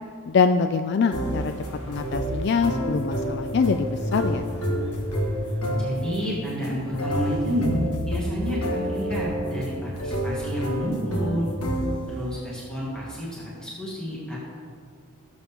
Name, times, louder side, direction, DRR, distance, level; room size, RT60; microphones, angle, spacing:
voice 1, 0.3-1.5 1.9-4.4, left 5 dB, 50° left, 8 dB, 0.3 m, -24 dB
sound 1, 1.1-12.3, equal, 85° left, 1.7 m, -29 dB
sound 2, 1.3-7.6, equal, 70° left, 2.3 m, -45 dB
voice 2, 5.8-11.5 12.1-14.4, equal, 5° left, -7 dB, 2.1 m, -30 dB
17.0 x 7.4 x 3.6 m, 2.3 s
head